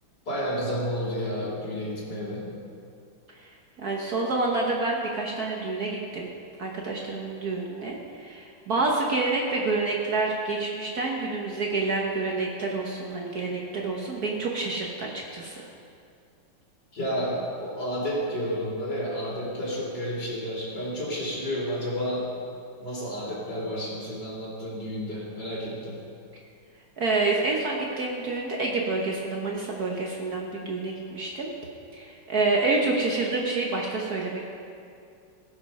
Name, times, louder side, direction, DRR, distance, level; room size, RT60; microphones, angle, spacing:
voice 1, 0.3-2.5 16.9-22.3 22.8-26.0, equal, 50° left, -6 dB, 3.6 m, -31 dB
voice 2, 3.8-6.3 6.6-15.6 27.0-31.5 31.9-34.4, right 3 dB, 50° right, -1 dB, 1.4 m, -28 dB
18.0 x 6.4 x 5.5 m, 2.4 s
omnidirectional pair, 2.3 m